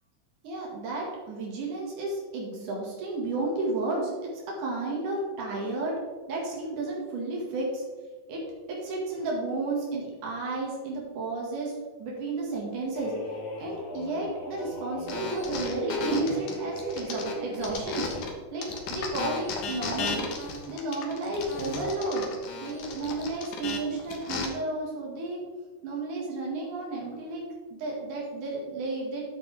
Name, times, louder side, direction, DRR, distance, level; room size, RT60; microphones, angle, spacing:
voice 1, 0.4-6.0 6.3-7.8 8.3-8.4 8.7-11.7 12.0-13.1 13.6-18.1 18.5-20.2 20.7-22.3 22.6-25.4 25.8-27.4 27.7-29.2, right 2 dB, 85° right, -3 dB, 3.5 m, -32 dB
sound 1, 12.9-18.3, right 1 dB, 40° left, 3.6 m, -37 dB
sound 2, 15.1-18.3 18.6-24.5, left 4 dB, 80° left, 2.8 m, -35 dB
9.7 x 9.0 x 3.5 m, 1.4 s
omnidirectional pair, 3.5 m